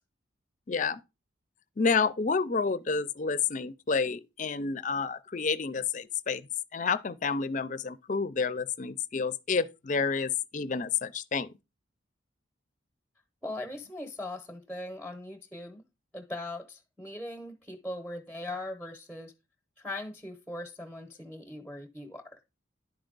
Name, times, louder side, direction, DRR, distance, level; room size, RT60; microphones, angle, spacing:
voice 1, 0.7-1.0 1.8-6.4 6.7-11.5, left 5 dB, 40° left, 0.4 m, -29 dB
voice 2, 13.4-15.8 16.1-19.3 19.8-22.4, left 1 dB, ahead, 0.8 m, -40 dB
10.5 x 4.4 x 3.9 m
head